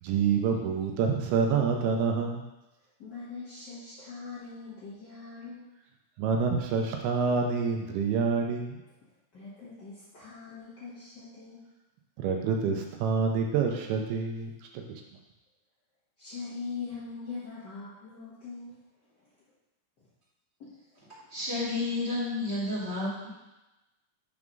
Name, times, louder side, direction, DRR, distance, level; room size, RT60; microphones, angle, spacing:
voice 1, 0.0-2.4 6.2-8.8 12.2-15.0, right 5 dB, 80° right, 2 dB, 2.6 m, -27 dB
voice 2, 3.0-5.6 9.3-11.7 16.2-18.8 19.1-19.3 20.0-20.1 20.6-20.8, left 4 dB, 50° left, -12 dB, 1.3 m, -42 dB
voice 3, 21.3-23.3, left 2 dB, 20° right, -10 dB, 1.5 m, -31 dB
6.1 x 4.7 x 5.3 m, 1.0 s
omnidirectional pair, 4.7 m